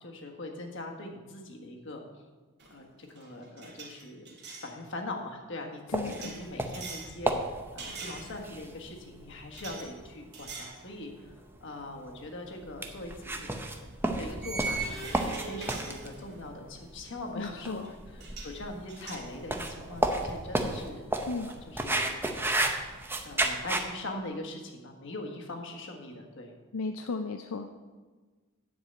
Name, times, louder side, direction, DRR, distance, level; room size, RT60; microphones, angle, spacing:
voice 1, 0.0-2.0 2.7-7.3 7.7-13.6 14.2-17.8 18.1-21.0 21.4-22.6 23.2-26.5, left 2 dB, 60° left, 2 dB, 1.4 m, -41 dB
sound 1, 2.6-2.8 3.1-4.7 6.1-7.1 7.8-8.7 9.5-9.9 10.3-10.8 11.2-11.4 12.9-13.1 14.4-16.5 17.8-17.9 18.2-18.6 18.9-20.4, right 4 dB, 50° right, 2.2 m, -41 dB
voice 2, 5.9-6.3 17.4-17.9 21.3-21.5 26.7-27.7, left 4 dB, 80° left, 6 dB, 0.5 m, -35 dB
sound 2, 5.9-23.9, right 1 dB, 10° right, 0.6 m, -33 dB
9.9 x 4.7 x 7.8 m, 1.4 s
head